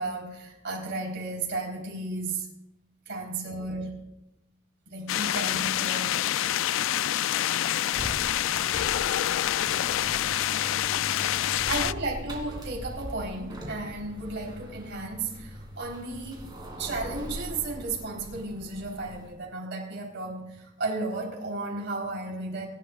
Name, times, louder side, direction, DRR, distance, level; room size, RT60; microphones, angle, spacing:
voice 1, 0.0-2.5 3.1-4.0 4.9-6.3 8.5-8.6 11.7-22.7, right 2 dB, 60° right, -1 dB, 3.8 m, -34 dB
sound 1, 5.1-11.9, left 12 dB, 70° left, 0.3 m, -27 dB
sound 2, 7.9-19.4, equal, 20° right, 2.5 m, -41 dB
23.5 x 11.5 x 2.4 m, 0.90 s
head